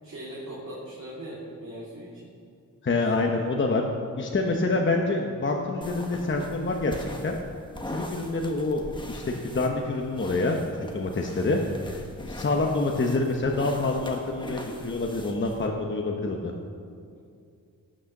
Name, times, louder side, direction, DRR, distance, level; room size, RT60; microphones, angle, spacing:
voice 1, 0.0-2.1, right 1 dB, 50° right, -7 dB, 2.8 m, -39 dB
voice 2, 2.8-3.8 4.2-7.4 7.9-11.6 11.9-16.5, left 3 dB, 35° left, 1 dB, 1.0 m, -27 dB
sound 1, 5.8-15.7, left 1 dB, 15° left, 1.3 m, -41 dB
17.5 x 6.5 x 6.6 m, 2.4 s
wide cardioid pair, 110°, 35 cm